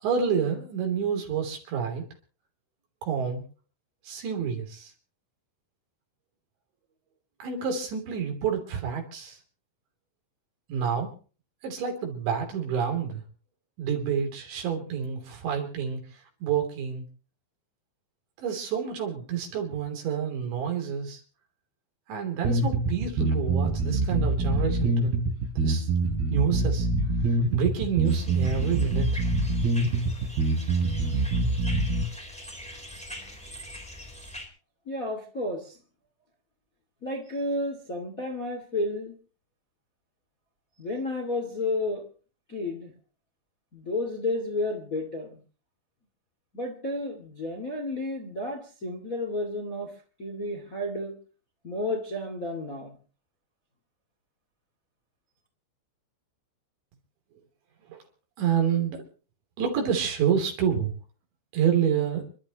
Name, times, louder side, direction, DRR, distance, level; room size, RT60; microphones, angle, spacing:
voice 1, 0.0-2.0 3.0-3.4 4.1-4.9 7.4-9.4 10.7-11.1 11.6-13.2 13.8-16.0 16.4-17.1 18.4-21.2 22.1-25.2 25.6-25.9 26.3-26.9 27.3-29.2 57.9-58.0 58.4-59.0 59.6-60.9 61.5-62.2, right 7 dB, 75° right, 3 dB, 5.4 m, -28 dB
sound 1, 22.4-32.0, right 2 dB, 60° right, 4.9 m, -25 dB
sound 2, 28.0-34.5, left 1 dB, ahead, 2.9 m, -43 dB
voice 2, 34.8-35.8 37.0-39.1 40.8-42.0 42.5-42.9 43.7-45.4 46.5-49.9 50.2-51.1 51.6-53.0, left 2 dB, 30° left, 2 dB, 1.6 m, -31 dB
29.5 x 12.0 x 3.0 m, 0.37 s
omnidirectional pair, 5.2 m